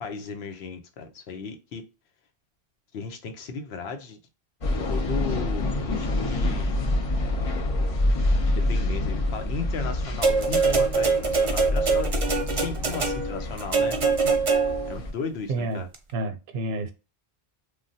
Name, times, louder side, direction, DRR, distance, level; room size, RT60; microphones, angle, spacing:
voice 1, 0.0-1.8 2.9-4.2 4.9-6.8 8.4-12.1 12.6-14.0 14.9-15.9, left 5 dB, 90° left, 0.9 m, -35 dB
sound 1, 4.6-15.1, left 1 dB, 45° left, 0.4 m, -27 dB
sound 2, 10.2-15.0 15.9-16.0, right 4 dB, 40° right, 0.5 m, -24 dB
voice 2, 15.5-15.8 16.1-16.9, right 2 dB, 80° right, 0.8 m, -29 dB
3.1 x 2.2 x 2.6 m
omnidirectional pair, 1.0 m